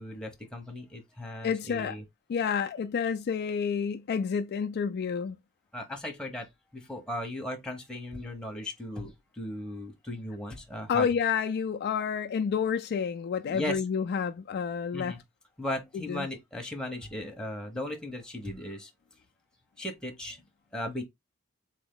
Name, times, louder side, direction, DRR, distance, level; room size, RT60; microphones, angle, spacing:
voice 1, 0.0-2.0 5.7-11.1 13.4-13.8 14.9-15.2 15.6-18.9 19.8-20.4 20.7-21.0, left 1 dB, 5° left, 1.0 m, -37 dB
voice 2, 1.4-2.0 2.3-5.4 10.9-15.2 15.9-16.3, left 6 dB, 50° left, 0.3 m, -29 dB
3.5 x 3.0 x 3.7 m
head